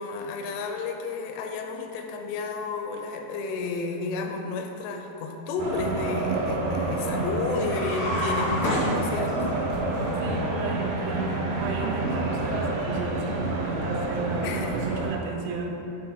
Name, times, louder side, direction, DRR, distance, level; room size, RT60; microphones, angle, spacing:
voice 1, 0.0-9.6 14.4-14.8, left 4 dB, 85° left, 4 dB, 2.7 m, -32 dB
sound 1, 5.6-15.1, right 2 dB, 70° right, 2.4 m, -28 dB
sound 2, 7.6-9.6, left 1 dB, 70° left, 1.0 m, -28 dB
voice 2, 10.2-15.7, right 4 dB, 90° right, 0 dB, 2.8 m, -34 dB
7.1 x 3.7 x 5.8 m, 2.9 s
omnidirectional pair, 4.8 m